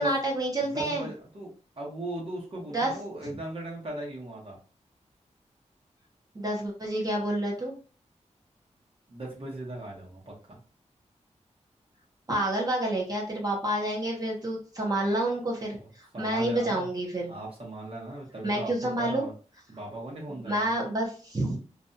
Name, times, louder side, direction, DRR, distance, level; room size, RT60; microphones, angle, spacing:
voice 1, 0.0-1.1 2.7-2.9 6.3-7.7 12.3-17.3 18.4-19.2 20.4-21.6, right 1 dB, 30° right, -3 dB, 0.7 m, -29 dB
voice 2, 0.6-4.6 9.1-10.6 15.8-15.9 16.1-16.9 17.3-18.7 19.0-19.3 19.7-20.7, right 1 dB, 50° right, -3 dB, 1.1 m, -38 dB
2.6 x 2.3 x 2.6 m, 0.39 s
wide cardioid pair, 130°, 12 cm